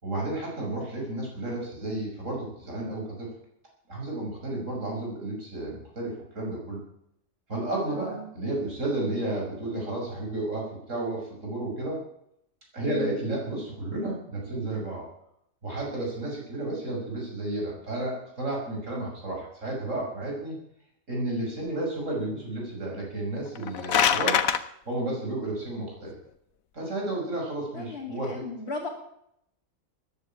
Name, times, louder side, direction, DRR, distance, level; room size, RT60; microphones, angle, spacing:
voice 1, 0.0-3.3 3.9-6.8 7.5-12.0 12.7-15.1 15.6-20.6 21.1-24.4 24.8-26.1 26.7-28.4, right 2 dB, 65° right, -2 dB, 6.7 m, -32 dB
voice 2, 7.9-8.2 12.8-13.1 27.7-28.9, left 3 dB, 50° left, -1 dB, 2.6 m, -36 dB
sound 1, 23.5-24.6, left 8 dB, 85° left, 1.3 m, -23 dB
14.5 x 10.0 x 8.8 m, 0.74 s
omnidirectional pair, 1.4 m